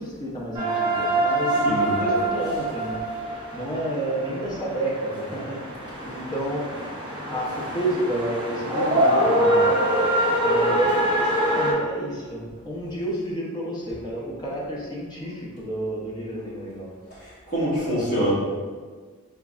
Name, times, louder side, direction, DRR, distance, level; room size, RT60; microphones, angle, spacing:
voice 1, 0.0-3.0 3.5-6.9 7.2-9.7 10.4-16.9, right 1 dB, 20° left, -5 dB, 0.7 m, -30 dB
sound 1, 0.5-11.7, right 1 dB, 20° right, 0.6 m, -24 dB
voice 2, 17.2-18.3, equal, 35° left, -10 dB, 1.4 m, -25 dB
3.5 x 3.1 x 2.4 m, 1.5 s
head